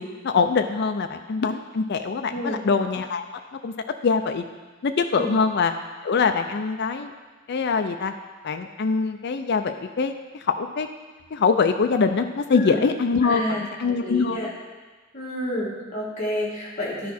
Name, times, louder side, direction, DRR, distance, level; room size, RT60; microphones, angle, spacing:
voice 1, 0.0-3.3 3.6-3.7 4.0-4.4 4.8-5.7 6.0-7.1 7.5-8.1 8.4-10.1 10.4-10.9 11.3-14.5, left 5 dB, 55° left, 7 dB, 0.4 m, -23 dB
voice 2, 2.3-2.6 5.1-5.3 12.5-12.8 13.2-13.7 14.0-14.5 15.1-17.1, left 1 dB, 35° left, -6 dB, 2.4 m, -29 dB
11.5 x 4.7 x 4.2 m, 1.3 s
head